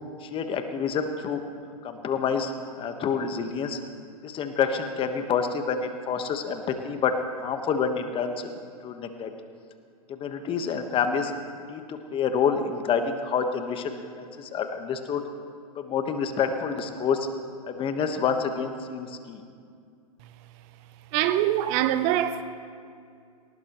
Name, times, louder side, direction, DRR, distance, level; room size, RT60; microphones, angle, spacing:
voice 1, 0.2-1.4 1.8-2.5 2.8-3.8 4.2-7.1 7.4-8.5 8.8-9.3 10.1-11.3 11.7-15.2 15.8-17.3 17.7-19.4, left 6 dB, 25° left, 1.3 m, -28 dB
voice 2, 21.1-22.4, right 12 dB, 40° right, 0.7 m, -23 dB
21.0 x 18.5 x 3.1 m
hypercardioid pair, 115°, 20 cm